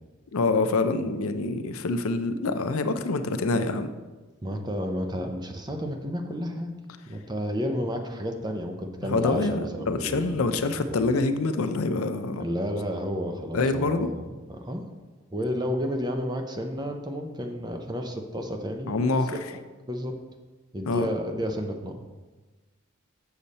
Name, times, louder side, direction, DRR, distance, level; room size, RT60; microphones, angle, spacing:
voice 1, 0.3-3.9 9.1-12.4 13.5-14.1 18.9-19.3 20.9-21.1, left 3 dB, 85° left, 9 dB, 0.6 m, -26 dB
voice 2, 4.4-6.7 7.1-10.6 10.9-11.1 12.4-14.8 15.3-19.6 19.9-20.2 20.7-22.0, equal, 20° right, 4 dB, 0.6 m, -31 dB
7.0 x 6.5 x 4.1 m, 1.2 s
head